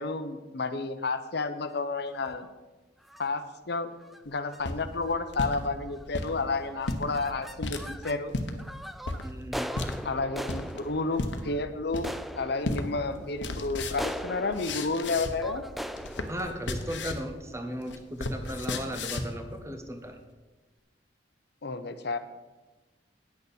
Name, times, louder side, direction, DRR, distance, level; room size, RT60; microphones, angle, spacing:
voice 1, 0.0-2.5 3.2-3.9 4.2-8.3 10.0-12.1 12.4-15.6 21.6-22.2, left 3 dB, 65° left, 10 dB, 0.8 m, -31 dB
sound 1, 2.1-2.5 3.0-3.3 4.0-4.2 4.5-4.6 4.9-5.3 5.9-6.2 6.5-8.2 8.6-17.8, equal, ahead, 0.3 m, -41 dB
sound 2, 4.4-5.6 6.0-6.3 6.8-7.1 7.6-7.8 8.3-8.5 9.1-9.2 9.7-9.9 10.5-10.8 11.2-11.4 11.9-12.3 12.6-12.8 13.1-15.5 15.8-17.3 17.6-19.4, left 2 dB, 80° left, 1.1 m, -34 dB
voice 2, 9.2-9.7 16.3-20.2, equal, 15° right, 5 dB, 1.1 m, -36 dB
9.6 x 6.7 x 7.1 m, 1.2 s
head